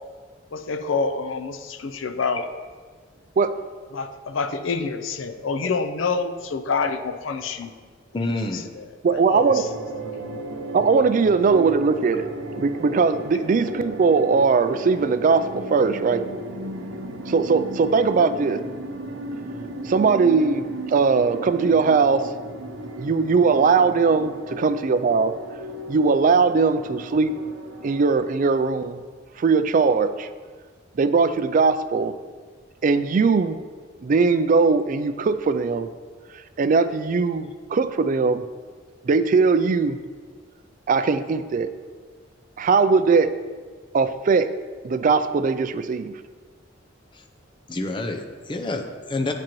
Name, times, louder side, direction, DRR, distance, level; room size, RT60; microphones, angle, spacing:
voice 1, 0.5-2.5 3.9-7.7 8.5-8.8 9.1-9.7, left 4 dB, 80° left, 9 dB, 0.5 m, -27 dB
voice 2, 8.1-8.7 47.1-47.2 47.7-49.3, left 2 dB, 25° left, 4 dB, 0.6 m, -28 dB
voice 3, 9.0-9.6 10.7-12.3 12.6-16.2 17.3-18.6 19.9-22.3 23.0-25.3 25.9-27.3 27.8-29.0 29.4-30.3 31.0-32.1 32.8-33.6 34.0-35.9 36.6-38.4 39.0-40.0 40.9-41.7 42.6-43.3 43.9-44.5 44.8-46.1, right 4 dB, 40° right, 12 dB, 0.3 m, -20 dB
sound 1, 9.3-28.1, right 1 dB, 85° right, 0.7 m, -35 dB
8.6 x 7.4 x 3.1 m, 1.5 s
head